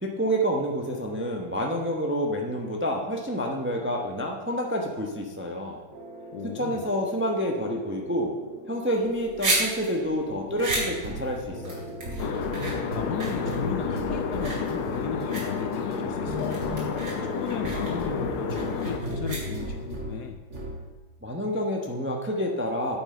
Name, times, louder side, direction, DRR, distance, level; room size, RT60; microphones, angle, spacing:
voice 1, 0.0-5.8 6.5-8.3 8.7-11.9 21.2-23.0, equal, 10° right, 1 dB, 0.5 m, -28 dB
sound 1, 5.9-20.2 20.5-20.8, equal, 35° right, 2.1 m, -37 dB
voice 2, 6.3-6.9 12.9-16.8 17.2-20.4, left 8 dB, 65° left, 6 dB, 1.1 m, -36 dB
sound 2, 9.0-19.9, right 2 dB, 60° right, 3.4 m, -34 dB
sound 3, 12.2-19.0, left 6 dB, 90° left, 1.7 m, -31 dB
9.2 x 7.2 x 5.1 m, 1.4 s
omnidirectional pair, 2.3 m